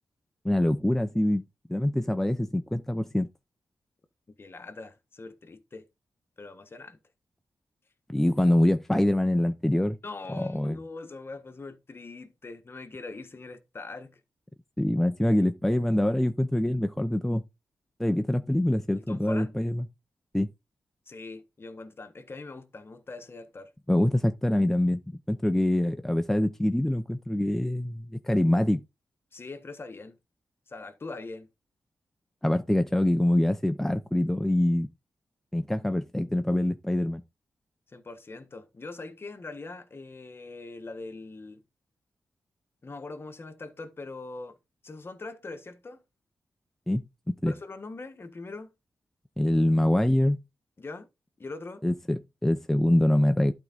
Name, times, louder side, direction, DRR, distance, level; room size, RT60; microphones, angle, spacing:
voice 1, 0.4-1.4 1.7-3.3 8.1-10.0 10.3-10.8 14.8-17.4 18.0-19.9 20.3-20.5 23.9-28.8 32.4-34.9 35.5-37.2 46.9-47.0 47.3-47.5 49.4-50.4 51.8-53.5, left 1 dB, 5° left, 0.7 m, -25 dB
voice 2, 4.3-5.8 6.4-7.0 10.0-14.2 18.9-19.5 21.1-23.7 29.3-30.2 30.7-31.5 37.9-41.6 42.8-44.6 44.8-46.0 47.5-48.7 50.8-51.1 51.4-51.8, left 3 dB, 35° left, 1.3 m, -42 dB
12.0 x 4.7 x 4.0 m
wide cardioid pair, 110°, 7 cm